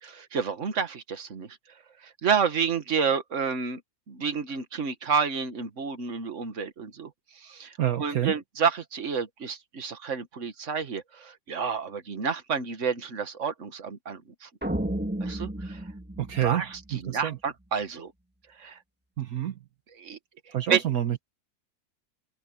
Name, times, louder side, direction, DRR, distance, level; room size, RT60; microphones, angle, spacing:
voice 1, 0.0-1.6 2.0-3.8 4.1-14.5 15.2-15.9 16.4-18.1 18.6-18.8 20.0-20.2 20.7-20.8, right 6 dB, 50° right, 1.8 m, -30 dB
voice 2, 7.8-8.3 16.2-16.6 16.9-17.4 19.2-19.5 20.5-21.2, right 11 dB, 70° right, 1.5 m, -27 dB
sound 1, 14.6-17.1, right 1 dB, 5° right, 1.7 m, -33 dB
omnidirectional pair, 1.6 m